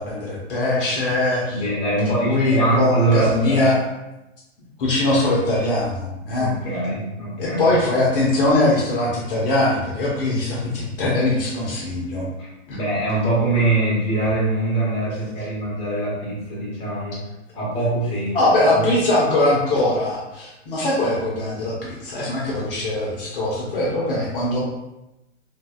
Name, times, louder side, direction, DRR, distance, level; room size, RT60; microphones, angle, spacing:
voice 1, 0.0-1.6 2.0-3.8 4.8-6.5 7.4-12.3 12.7-12.8 18.3-24.6, left 2 dB, 45° left, -4 dB, 0.7 m, -21 dB
voice 2, 1.5-3.7 6.4-7.7 12.7-17.2 17.5-18.4 18.7-18.9, right 2 dB, 15° left, -6 dB, 0.8 m, -23 dB
2.6 x 2.1 x 2.3 m, 0.95 s
figure-of-eight pair, 115°, 37 cm